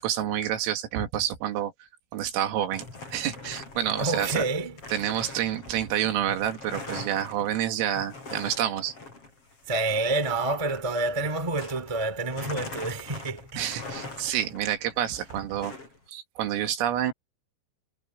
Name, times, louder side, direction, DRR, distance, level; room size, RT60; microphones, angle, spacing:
voice 1, 0.0-1.7 2.1-4.4 4.9-8.9 13.6-15.7 16.1-17.1, right 11 dB, 80° right, 4.6 m, -28 dB
sound 1, 2.3-12.0 12.3-16.0, left 3 dB, 30° left, 6.5 m, -42 dB
voice 2, 4.0-4.8 9.7-13.7, right 2 dB, 15° right, 1.2 m, -28 dB
omnidirectional pair, 6.0 m